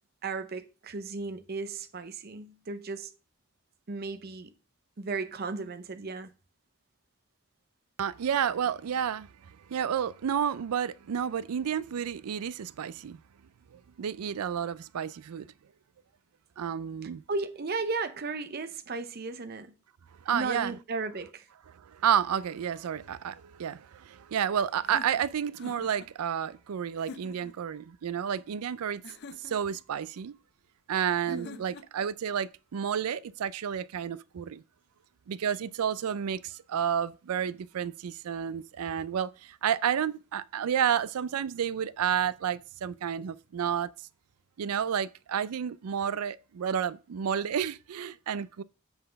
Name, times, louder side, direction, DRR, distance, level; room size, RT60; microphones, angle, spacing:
voice 1, 0.2-3.1 3.9-4.5 5.0-6.3 17.0-19.7 20.3-21.5 31.3-31.6, right 3 dB, 45° right, 0.6 m, -35 dB
voice 2, 8.0-13.2 13.7-15.5 16.6-17.2 20.2-20.7 21.7-29.0 29.4-30.3 30.9-34.6 35.3-43.9 44.6-48.6, right 8 dB, 90° right, 0.4 m, -31 dB
sound 1, 24.8-26.1 27.0-27.6 29.0-29.8 31.3-32.1, left 3 dB, 50° left, 0.5 m, -46 dB
7.8 x 4.0 x 5.2 m
head